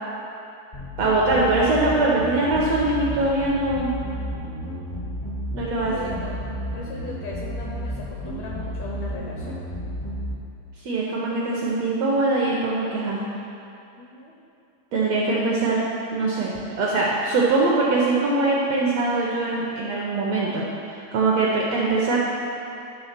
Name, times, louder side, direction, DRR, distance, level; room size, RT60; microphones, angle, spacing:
sound 1, 0.7-10.3, equal, 60° left, 0.4 m, -32 dB
voice 1, 1.0-3.9 5.5-6.2 10.8-13.2 14.9-15.8 16.1-20.6 21.1-22.2, right 2 dB, 75° right, -4 dB, 1.5 m, -22 dB
voice 2, 5.8-6.4 6.7-9.6 14.0-14.3, left 2 dB, 80° left, -3 dB, 1.6 m, -37 dB
10.5 x 3.5 x 5.8 m, 2.7 s
omnidirectional pair, 3.8 m